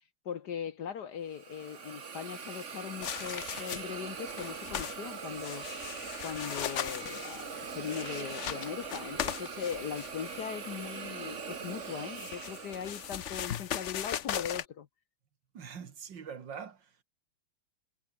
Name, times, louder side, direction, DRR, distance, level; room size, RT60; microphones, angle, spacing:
voice 1, 0.2-5.7 6.2-14.9, left 8 dB, 60° left, 1.4 m, -40 dB
Hiss, 1.3-13.4, right 5 dB, 35° right, 1.8 m, -42 dB
sound 1, 3.0-4.0 4.3-5.0 5.3-10.5 11.8-14.7, left 10 dB, 80° left, 0.6 m, -38 dB
voice 2, 15.5-17.0, right 7 dB, 60° right, 2.4 m, -44 dB
omnidirectional pair, 2.3 m